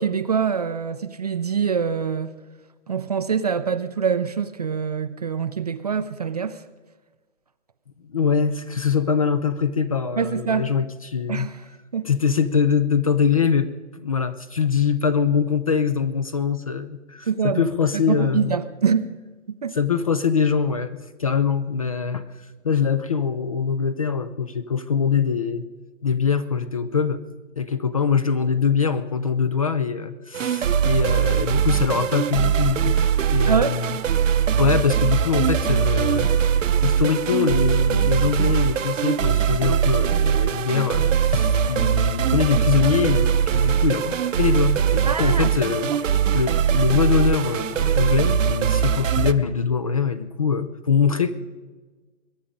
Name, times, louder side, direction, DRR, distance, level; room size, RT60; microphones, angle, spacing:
voice 1, 0.0-2.3 2.9-6.6 10.2-10.7 11.3-11.6 11.9-12.1 17.3-17.7 18.1-19.2 19.6-19.8 33.4-33.8 45.1-45.5, right 6 dB, 35° right, 12 dB, 0.4 m, -24 dB
voice 2, 8.1-11.5 12.0-13.7 13.9-18.6 19.7-22.2 22.6-25.6 26.0-27.2 27.6-33.0 33.3-34.0 34.6-36.3 36.8-45.9 46.3-51.3, left 6 dB, 30° left, 14 dB, 0.4 m, -23 dB
sound 1, 30.3-49.3, right 8 dB, 90° right, 0.9 m, -21 dB
22.0 x 10.0 x 5.1 m, 1.3 s
hypercardioid pair, 160°, 37 cm